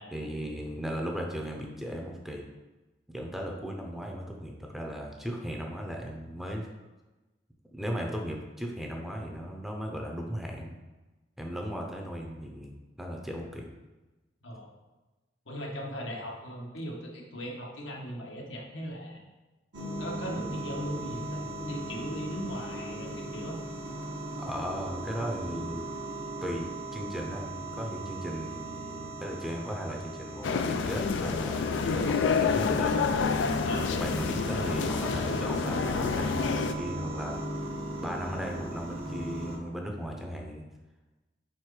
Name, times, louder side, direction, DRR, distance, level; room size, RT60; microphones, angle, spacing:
voice 1, 0.1-2.4 3.1-6.7 7.7-10.8 11.4-13.7 24.4-25.9 26.4-33.1 33.8-40.6, equal, ahead, 0 dB, 0.6 m, -36 dB
voice 2, 15.5-19.2 20.0-23.6 33.6-33.9, equal, 85° left, -1 dB, 1.3 m, -38 dB
sound 1, 19.7-39.6, right 1 dB, 70° right, 1.1 m, -38 dB
sound 2, 30.4-36.7, left 5 dB, 70° left, 0.4 m, -28 dB
4.5 x 4.3 x 4.8 m, 1.1 s
head